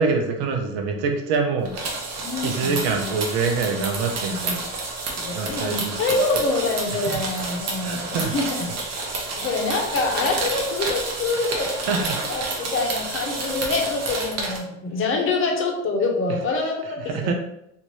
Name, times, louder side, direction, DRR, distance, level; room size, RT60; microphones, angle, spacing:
voice 1, 0.0-2.0 2.4-4.6 5.3-6.0 6.9-7.2 7.8-8.3 11.9-12.2 17.0-17.3, right 4 dB, 75° right, 3 dB, 0.7 m, -25 dB
sound 1, 1.6-14.6, right 3 dB, 50° right, 0.9 m, -29 dB
voice 2, 2.2-2.8 5.1-9.0 9.4-11.8 12.2-17.3, left 3 dB, 40° left, 2 dB, 0.8 m, -26 dB
2.6 x 2.5 x 3.0 m, 0.78 s
supercardioid pair, 90°, 34 cm